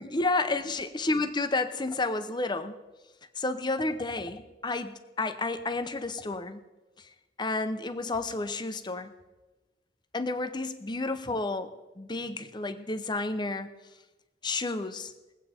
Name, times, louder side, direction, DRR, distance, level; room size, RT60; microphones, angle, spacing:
voice 1, 0.0-2.8 3.4-6.6 7.4-9.1 10.1-11.7 12.0-13.7 14.4-15.1, left 2 dB, 25° left, 10 dB, 0.7 m, -31 dB
21.5 x 8.2 x 4.3 m, 1.1 s
head